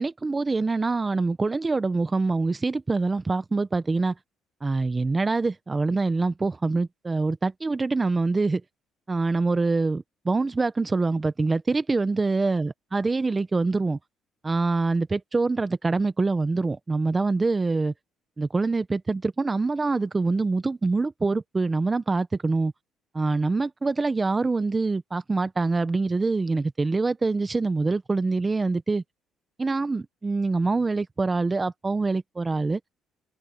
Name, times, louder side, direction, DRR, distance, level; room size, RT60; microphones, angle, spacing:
voice 1, 0.0-4.1 4.6-8.6 9.1-14.0 14.4-17.9 18.4-22.7 23.1-29.0 29.6-32.8, right 3 dB, 20° right, 1.0 m, -25 dB
cardioid pair, 115°, 0 cm